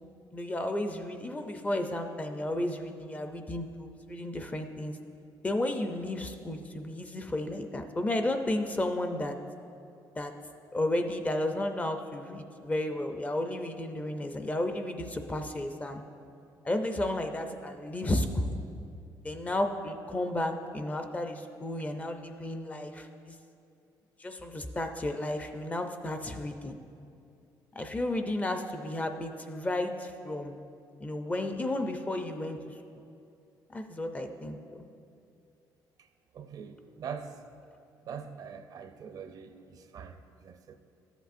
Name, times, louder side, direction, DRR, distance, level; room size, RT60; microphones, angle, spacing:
voice 1, 0.3-5.0 5.4-9.4 10.2-10.3 10.7-16.0 16.6-18.6 19.2-23.3 24.2-26.8 27.8-30.6 31.0-32.6 33.7-34.9, left 1 dB, 20° left, 0.5 m, -33 dB
voice 2, 36.3-37.4 38.0-40.8, right 6 dB, 55° right, 0.5 m, -43 dB
13.5 x 8.0 x 2.5 m
cardioid pair, 125°, 8 cm